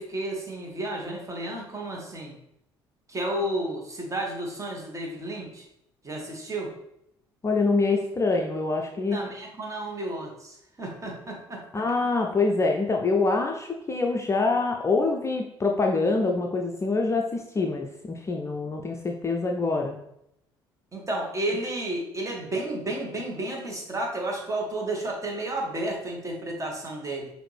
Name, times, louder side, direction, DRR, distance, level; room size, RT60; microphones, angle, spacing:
voice 1, 0.0-2.3 3.1-5.6 6.0-6.7 9.0-11.8 20.9-27.3, right 1 dB, 25° right, 0 dB, 1.4 m, -32 dB
voice 2, 7.4-9.2 11.7-20.0, left 3 dB, 25° left, 2 dB, 0.5 m, -25 dB
5.7 x 2.6 x 3.3 m, 0.78 s
figure-of-eight pair, 55°, 13 cm